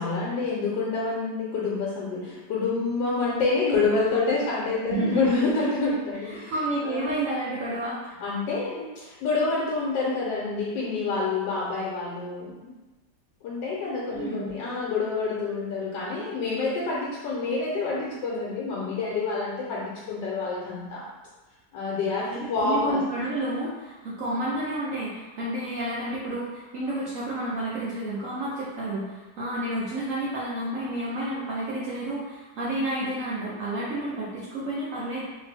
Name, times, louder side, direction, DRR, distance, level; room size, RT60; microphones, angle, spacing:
voice 1, 0.0-6.5 6.8-7.2 8.2-12.7 13.4-21.0 21.7-23.0, left 3 dB, 90° left, -6 dB, 1.3 m, -27 dB
voice 2, 4.9-5.5 6.3-8.0 14.1-14.5 22.3-35.2, right 1 dB, 70° right, -7 dB, 0.8 m, -30 dB
2.9 x 2.6 x 3.3 m, 1.2 s
omnidirectional pair, 1.9 m